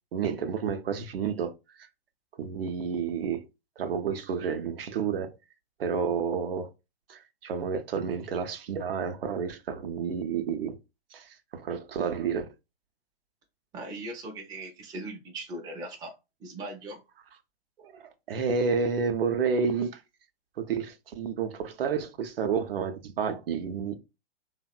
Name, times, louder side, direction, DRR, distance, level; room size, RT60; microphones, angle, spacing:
voice 1, 0.1-1.5 1.8-1.9 2.4-3.4 3.8-5.4 5.8-6.7 7.1-10.8 11.1-12.5 17.8-20.0 20.6-23.9, right 6 dB, 65° right, 0.5 m, -30 dB
voice 2, 13.7-16.1 16.4-17.0, right 2 dB, 10° right, 0.4 m, -39 dB
2.7 x 2.0 x 2.3 m
figure-of-eight pair, 110°, 31 cm